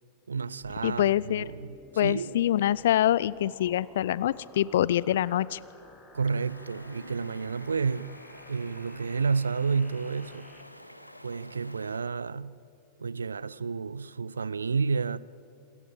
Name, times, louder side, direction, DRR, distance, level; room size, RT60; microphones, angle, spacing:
voice 1, 0.3-2.4 6.1-8.2 8.5-10.5 11.2-12.6 13.0-15.2, right 5 dB, 75° right, 0.4 m, -30 dB
sound 1, 0.6-10.6, left 1 dB, 5° left, 2.9 m, -54 dB
voice 2, 0.8-1.4 2.0-5.6, left 12 dB, 60° left, 0.4 m, -25 dB
Stream, 6.3-12.0, equal, 90° left, 1.1 m, -49 dB
27.0 x 14.5 x 7.7 m
figure-of-eight pair, 90°, 0 cm